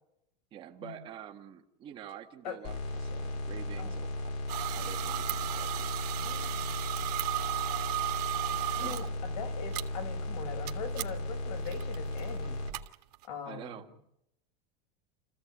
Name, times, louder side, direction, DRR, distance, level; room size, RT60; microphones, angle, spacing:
voice 1, 0.5-4.3 4.7-5.9 8.8-9.0 13.4-13.9, right 10 dB, 25° right, 4 dB, 1.7 m, -47 dB
sound 1, 2.6-12.7, left 1 dB, 45° left, 2.7 m, -36 dB
sound 2, 4.5-9.1 9.7-9.8 10.7-10.8 11.0-11.1 11.7-13.2, right 17 dB, 80° right, 1.9 m, -35 dB
voice 2, 6.1-6.7 8.3-12.6 13.2-13.9, left 6 dB, 80° left, 6 dB, 5.3 m, -42 dB
29.0 x 15.0 x 8.5 m, 0.82 s
supercardioid pair, 175°, 20 cm